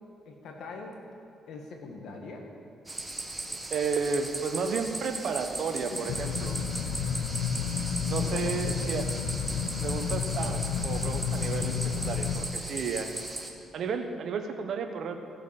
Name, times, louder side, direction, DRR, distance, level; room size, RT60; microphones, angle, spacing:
voice 1, 0.3-1.0 1.5-2.5 5.9-6.1 8.2-9.0, left 3 dB, 70° left, 2 dB, 1.9 m, -43 dB
sound 1, 2.9-13.5, right 2 dB, 15° right, 1.5 m, -37 dB
voice 2, 3.7-6.6 8.1-9.1 9.8-13.2 13.7-15.2, right 5 dB, 65° right, 5 dB, 1.1 m, -32 dB
sound 2, 6.1-12.4, left 7 dB, 90° left, 0.7 m, -31 dB
15.5 x 7.2 x 6.0 m, 2.8 s
cardioid pair, 95°, 0 cm